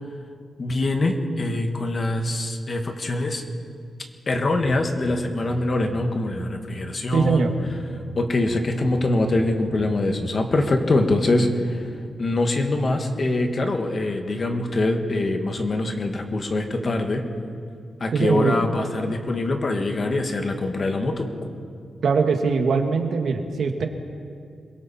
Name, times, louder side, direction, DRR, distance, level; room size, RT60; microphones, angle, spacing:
voice 1, 0.6-3.4 4.3-7.5 8.1-11.9 12.2-17.2 18.0-21.3, left 2 dB, 35° left, 4 dB, 1.7 m, -24 dB
sound 1, 4.5-11.1, right 3 dB, 40° right, 4.1 m, -41 dB
voice 2, 7.1-7.5 18.1-18.5 22.0-23.9, right 5 dB, 65° right, 4 dB, 1.8 m, -21 dB
27.0 x 22.5 x 4.4 m, 2.3 s
wide cardioid pair, 145°, 0 cm